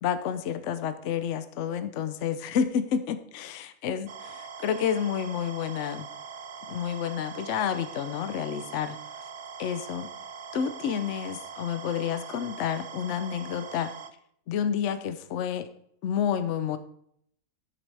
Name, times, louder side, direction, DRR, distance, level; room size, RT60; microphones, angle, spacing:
voice 1, 0.0-4.1 4.6-6.1 6.7-9.0 9.6-10.1 10.5-13.9 14.5-15.7 16.0-16.8, left 8 dB, 60° left, 11 dB, 0.9 m, -29 dB
sound 1, 4.1-14.1, right 6 dB, 50° right, 0.6 m, -42 dB
13.5 x 7.3 x 3.4 m, 0.68 s
omnidirectional pair, 1.5 m